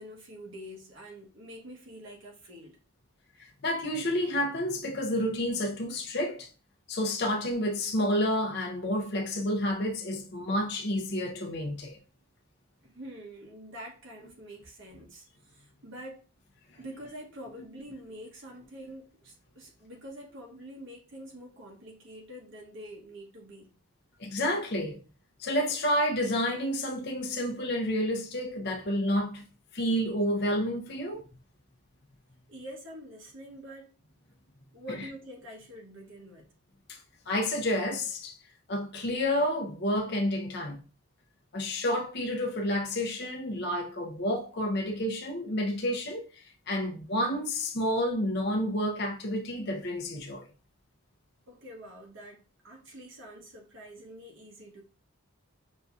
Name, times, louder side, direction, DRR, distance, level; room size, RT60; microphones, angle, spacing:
voice 1, 0.0-2.8 12.8-16.2 16.8-23.7 32.5-33.9 34.7-36.5 51.5-54.8, equal, 55° right, 0.9 m, -46 dB
voice 2, 3.4-6.5 6.9-12.0 24.2-25.0 25.4-29.4 29.7-31.2 36.9-37.0 37.3-38.4 38.7-40.8 41.5-50.5, equal, 50° left, 0.7 m, -30 dB
6.2 x 2.7 x 2.4 m
head